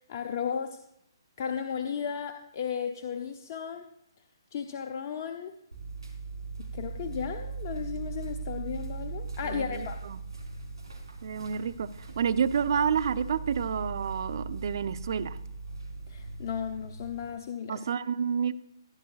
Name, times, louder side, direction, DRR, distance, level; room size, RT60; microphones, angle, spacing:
voice 1, 0.1-0.8 1.4-3.9 4.5-5.5 6.7-10.0 16.1-17.7, left 7 dB, 40° left, 5 dB, 0.6 m, -34 dB
sound 1, 5.7-17.3, right 4 dB, 85° right, 3.3 m, -39 dB
voice 2, 9.4-10.2 11.2-11.9 12.2-15.4 17.7-18.5, right 7 dB, 55° right, 13 dB, 0.6 m, -29 dB
15.5 x 9.3 x 2.4 m, 0.76 s
hypercardioid pair, 140°, 2 cm